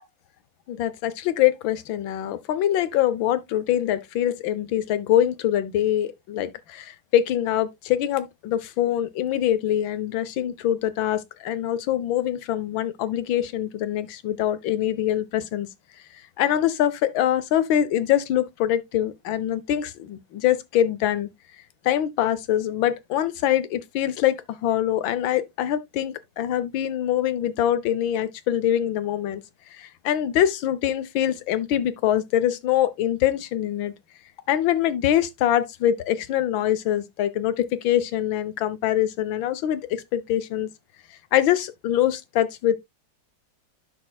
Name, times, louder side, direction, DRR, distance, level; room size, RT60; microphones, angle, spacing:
voice 1, 0.7-15.7 16.4-21.3 21.8-29.4 29.7-33.9 34.5-40.7 41.3-42.8, left 11 dB, 85° left, 1.6 m, -24 dB
11.0 x 6.2 x 2.3 m
omnidirectional pair, 2.1 m